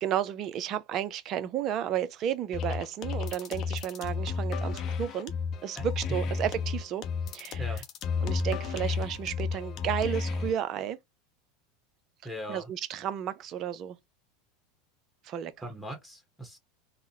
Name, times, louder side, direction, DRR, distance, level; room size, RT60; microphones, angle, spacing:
voice 1, 0.0-5.3 5.6-7.0 7.3-7.7 8.2-11.0 12.5-14.0 15.2-15.5, right 10 dB, 45° right, 0.5 m, -32 dB
sound 1, 2.5-10.5, left 5 dB, 45° left, 0.6 m, -32 dB
voice 2, 12.2-12.7 15.6-16.6, equal, ahead, 1.2 m, -40 dB
3.7 x 2.1 x 2.8 m
figure-of-eight pair, 80°, 0 cm